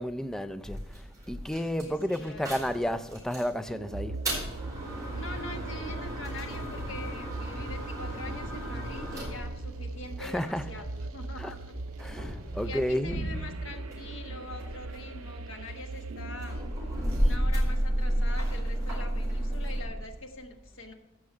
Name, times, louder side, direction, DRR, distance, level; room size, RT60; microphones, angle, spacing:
voice 1, 0.0-4.2 10.2-10.8 11.4-11.6 12.0-13.3, equal, ahead, 0.3 m, -32 dB
sound 1, 0.6-3.5 4.0-10.8 11.5-14.1 14.4-19.8, equal, 15° right, 4.7 m, -33 dB
voice 2, 1.8-2.7 5.1-11.8 12.6-16.6 17.1-20.9, left 2 dB, 70° left, 1.3 m, -44 dB
sound 2, 3.7-17.4, right 2 dB, 90° right, 0.5 m, -39 dB
15.0 x 6.0 x 4.9 m
head